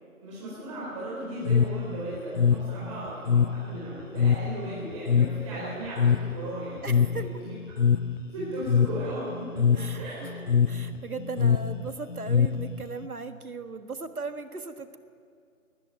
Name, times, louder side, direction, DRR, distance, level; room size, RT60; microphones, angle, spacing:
voice 1, 0.2-7.5 8.3-10.6, right 1 dB, 20° right, -8 dB, 4.4 m, -37 dB
sound 1, 1.4-13.1, left 7 dB, 60° left, 0.7 m, -25 dB
voice 2, 6.8-7.3 9.7-10.3 10.7-15.0, right 4 dB, 80° right, 8 dB, 1.8 m, -38 dB
19.5 x 14.5 x 9.2 m, 2.3 s
figure-of-eight pair, 160°, 43 cm